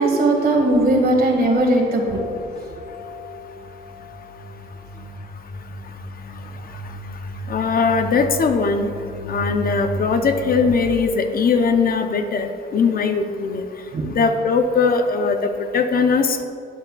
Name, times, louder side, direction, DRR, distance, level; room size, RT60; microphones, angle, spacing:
voice 1, 0.0-2.2 13.9-14.0, right 1 dB, 50° right, 2 dB, 1.6 m, -18 dB
sound 1, 0.6-1.8 2.1-10.7, equal, 15° left, 1.7 m, -35 dB
voice 2, 7.5-8.9 9.3-13.6 14.1-16.4, left 5 dB, 45° left, 7 dB, 0.6 m, -20 dB
11.5 x 8.1 x 2.3 m, 2.5 s
cardioid pair, 90°, 20 cm